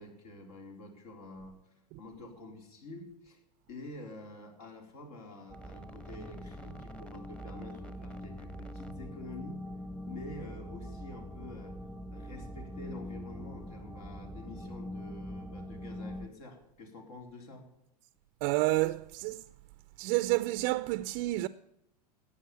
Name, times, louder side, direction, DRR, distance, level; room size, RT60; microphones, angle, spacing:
voice 1, 0.0-1.6 2.0-3.4 3.7-9.6 10.0-11.8 12.1-17.7, left 2 dB, 65° left, 3.9 m, -48 dB
sound 1, 5.5-16.3, equal, 5° left, 1.1 m, -43 dB
voice 2, 18.4-19.4 20.0-21.5, right 19 dB, 45° right, 0.5 m, -29 dB
13.5 x 9.0 x 7.1 m
hypercardioid pair, 95°, 21 cm